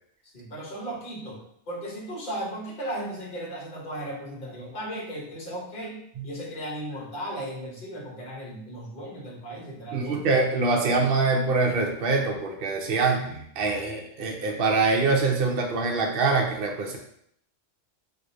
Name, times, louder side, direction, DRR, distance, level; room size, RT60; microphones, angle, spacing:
voice 1, 0.2-6.0 6.2-10.2, right 1 dB, 45° left, -2 dB, 1.1 m, -36 dB
voice 2, 9.9-17.0, right 3 dB, 55° right, 1 dB, 0.7 m, -24 dB
4.6 x 2.5 x 2.6 m, 0.69 s
omnidirectional pair, 1.3 m